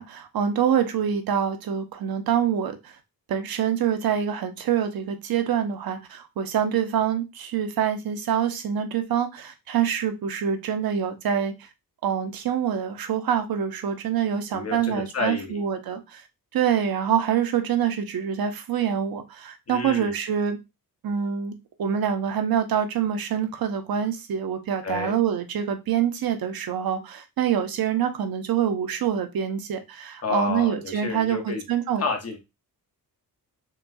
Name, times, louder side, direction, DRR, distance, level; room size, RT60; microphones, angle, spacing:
voice 1, 0.0-2.9 3.3-11.7 12.0-16.2 16.5-20.6 21.0-21.5 21.8-32.0, right 8 dB, 70° right, 0.9 m, -25 dB
voice 2, 14.5-15.6 19.7-20.1 24.8-25.1 30.2-31.6 32.0-32.4, left 4 dB, 40° left, 1.1 m, -30 dB
6.1 x 2.3 x 2.6 m
cardioid pair, 115°, 37 cm